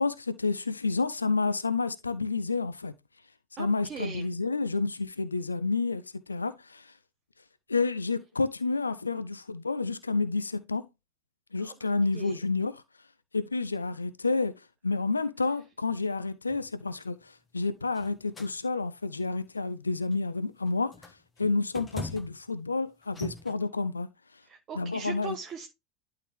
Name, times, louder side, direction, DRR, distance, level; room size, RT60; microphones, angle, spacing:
voice 1, 0.0-2.9 3.6-6.9 7.7-10.8 11.5-12.8 13.3-20.9 21.4-24.1 24.8-25.3, left 3 dB, 85° left, 0.5 m, -30 dB
voice 2, 3.6-4.3 11.6-11.7 12.1-12.4 24.4-25.7, right 6 dB, 35° right, 0.9 m, -40 dB
sound 1, 16.5-16.7 17.9-18.5 19.1-19.4 20.1-20.3 20.7-22.5 23.0-23.5, left 3 dB, 20° left, 1.1 m, -42 dB
11.5 x 3.9 x 3.2 m
figure-of-eight pair, 75°, 0 cm